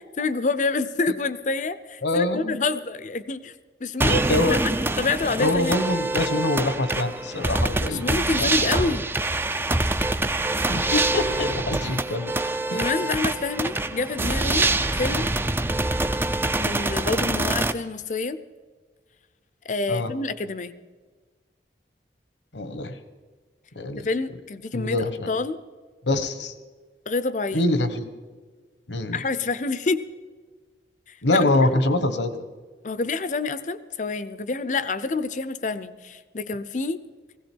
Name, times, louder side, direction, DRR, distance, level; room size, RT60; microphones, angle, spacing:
voice 1, 0.2-3.5 3.8-4.2 5.0-5.7 7.8-9.0 12.7-14.7 14.9-15.3 16.6-18.4 19.7-20.7 24.0-25.6 27.1-27.7 29.1-30.0 31.1-31.8 32.8-37.0, left 3 dB, 40° left, 14 dB, 0.6 m, -27 dB
voice 2, 2.0-2.6 4.1-4.6 5.4-8.1 8.4-8.7 10.7-12.3 12.7-12.9 19.9-20.1 22.5-23.0 23.8-24.1 24.7-25.3 26.1-26.5 27.5-28.1 28.9-29.2 31.2-32.3, left 2 dB, 80° left, 11 dB, 1.1 m, -24 dB
sound 1, 4.0-17.7, right 2 dB, 10° right, 0.4 m, -25 dB
17.0 x 16.5 x 4.6 m, 1.4 s
head